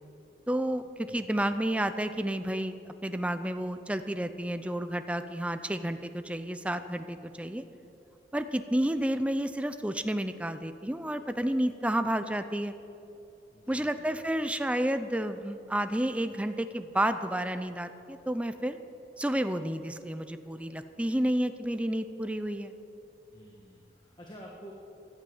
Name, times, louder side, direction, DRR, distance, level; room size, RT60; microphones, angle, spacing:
voice 1, 0.5-7.6 8.3-12.7 13.7-18.8 19.2-22.7, right 1 dB, 5° right, 9 dB, 0.5 m, -31 dB
voice 2, 13.5-14.1 23.3-24.7, equal, 25° left, -2 dB, 1.6 m, -50 dB
16.0 x 12.0 x 7.1 m, 2.8 s
head